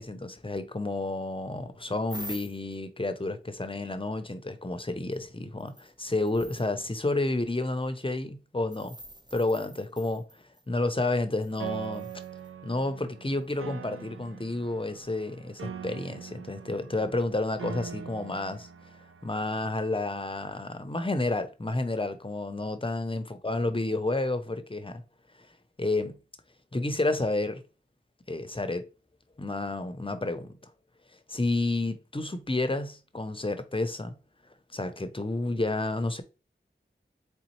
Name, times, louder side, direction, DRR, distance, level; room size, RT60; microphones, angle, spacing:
voice 1, 0.0-8.9 9.3-10.3 10.7-12.1 12.6-18.7 19.2-25.0 25.8-26.2 26.7-27.6 28.3-28.9 29.4-30.7 31.3-34.2 34.7-36.2, left 2 dB, 25° left, 0.6 m, -30 dB
sound 1, 2.1-2.7 5.1-5.2 5.6-6.7 8.7-10.7 11.4-12.5 13.5-13.6, right 1 dB, 20° right, 0.6 m, -46 dB
Piano, 11.6-19.6, right 7 dB, 85° right, 0.4 m, -42 dB
4.0 x 3.4 x 3.0 m
wide cardioid pair, 45°, 21 cm